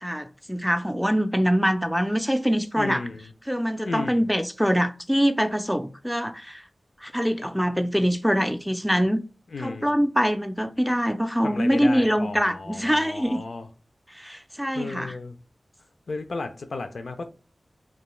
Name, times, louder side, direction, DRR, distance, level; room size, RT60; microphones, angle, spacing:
voice 1, 0.0-3.0 3.5-6.6 7.0-9.2 9.6-13.4 14.1-15.1, equal, ahead, 0.3 m, -24 dB
voice 2, 2.8-3.3 3.8-4.3 9.5-9.9 11.4-13.7 14.7-15.4 16.1-17.3, left 3 dB, 85° left, 0.3 m, -34 dB
2.2 x 2.2 x 2.9 m
cardioid pair, 45°, 0 cm